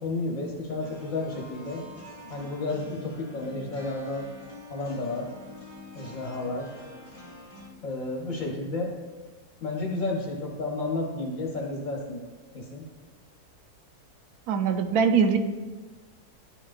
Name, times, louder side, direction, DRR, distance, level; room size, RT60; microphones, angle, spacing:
voice 1, 0.0-1.8 2.3-4.2 4.7-5.3 5.9-6.7 7.8-8.9 9.6-12.2 12.5-12.8, left 2 dB, 60° left, -2 dB, 1.3 m, -31 dB
sound 1, 0.8-7.7, left 2 dB, 15° left, 1.1 m, -46 dB
voice 2, 14.5-15.4, right 6 dB, 70° right, 8 dB, 1.0 m, -22 dB
11.0 x 4.9 x 2.5 m, 1.3 s
omnidirectional pair, 1.7 m